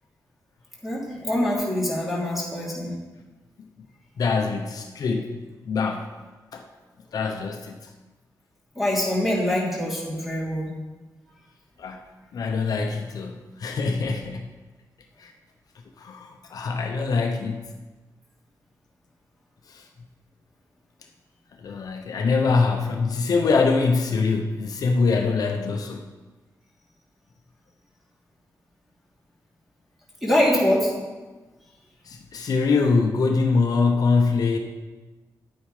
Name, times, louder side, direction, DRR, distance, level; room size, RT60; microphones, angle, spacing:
voice 1, 0.8-2.9 8.7-10.7 30.2-30.9, left 1 dB, ahead, -5 dB, 2.9 m, -24 dB
voice 2, 4.2-5.4 5.7-6.1 6.5-6.6 7.1-7.9 11.8-12.0 12.3-14.5 15.2-15.3 16.0-17.7 19.7-19.9 21.6-26.0 32.1-34.6, left 4 dB, 65° left, 3 dB, 0.9 m, -24 dB
9.8 x 8.9 x 4.9 m, 1.2 s
wide cardioid pair, 150°, 7 cm